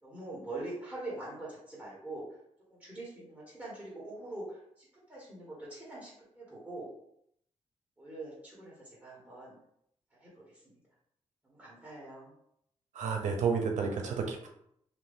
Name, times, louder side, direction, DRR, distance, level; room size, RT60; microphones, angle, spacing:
voice 1, 0.0-2.2 2.7-6.9 8.0-9.6 10.2-10.7 11.4-12.3, right 2 dB, 10° right, -7 dB, 1.5 m, -44 dB
voice 2, 13.0-14.5, right 5 dB, 80° right, 3 dB, 0.7 m, -31 dB
2.6 x 2.6 x 3.6 m, 0.72 s
cardioid pair, 75°, 12 cm